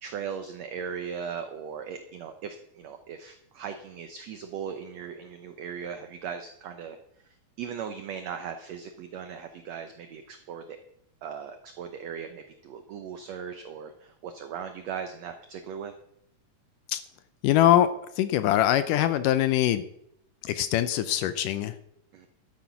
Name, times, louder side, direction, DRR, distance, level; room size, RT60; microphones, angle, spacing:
voice 1, 0.0-10.8 11.2-15.9 22.1-22.3, right 7 dB, 70° right, 7 dB, 1.7 m, -38 dB
voice 2, 17.4-17.9 18.2-19.8 20.4-21.7, left 12 dB, 80° left, 13 dB, 2.1 m, -23 dB
12.5 x 8.7 x 5.7 m, 0.73 s
omnidirectional pair, 4.0 m